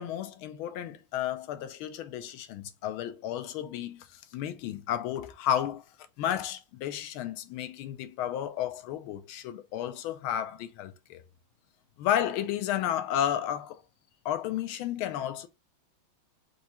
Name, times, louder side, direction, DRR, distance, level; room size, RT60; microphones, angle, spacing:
voice 1, 0.0-5.8 6.2-11.2 12.0-13.8 14.2-15.5, left 10 dB, 80° left, 1.5 m, -32 dB
4.7 x 2.8 x 4.1 m
omnidirectional pair, 2.3 m